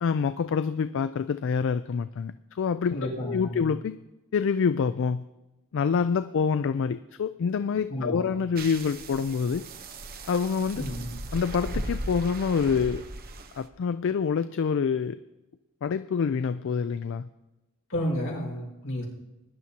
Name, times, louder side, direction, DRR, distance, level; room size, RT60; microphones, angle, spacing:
voice 1, 0.0-3.0 3.2-4.0 4.3-5.2 5.7-9.6 10.3-10.8 11.3-13.0 13.6-15.2 15.8-17.3, left 6 dB, 60° left, 12 dB, 0.3 m, -26 dB
voice 2, 2.9-3.7 7.9-8.4 10.7-11.1 17.9-19.0, equal, 75° left, -2 dB, 5.5 m, -31 dB
sound 1, 8.6-13.7, right 1 dB, 45° right, 0.9 m, -37 dB
20.5 x 11.0 x 2.9 m, 1.0 s
head